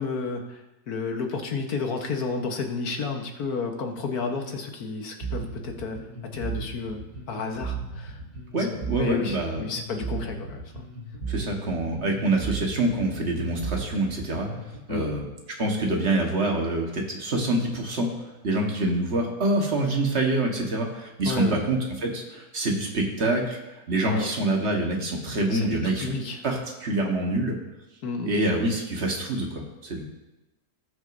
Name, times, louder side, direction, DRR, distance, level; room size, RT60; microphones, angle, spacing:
voice 1, 0.0-6.0 6.3-7.0 7.3-8.2 8.6-8.7 8.9-10.8 14.9-15.2 21.2-21.7 24.0-24.3 25.5-26.4 28.0-28.4, left 4 dB, 70° left, 3 dB, 1.7 m, -31 dB
Bass guitar, 5.2-14.8, right 5 dB, 65° right, 2.4 m, -35 dB
voice 2, 8.5-9.6 11.3-14.5 14.9-15.3 15.6-26.1 26.4-27.6 28.2-30.0, right 2 dB, 45° right, 1 dB, 1.7 m, -26 dB
18.5 x 6.3 x 2.6 m, 1.0 s
omnidirectional pair, 1.6 m